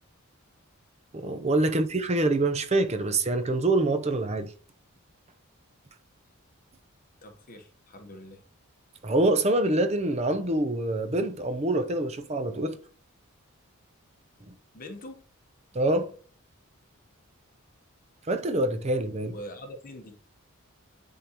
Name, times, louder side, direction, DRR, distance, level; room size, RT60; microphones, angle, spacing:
voice 1, 1.1-4.5 9.0-12.8 14.5-14.6 15.7-16.1 18.3-19.3, right 2 dB, 30° right, 0.6 m, -25 dB
voice 2, 7.2-8.4 14.7-15.2 19.3-20.2, equal, 40° left, 1.1 m, -43 dB
10.0 x 3.7 x 3.0 m
head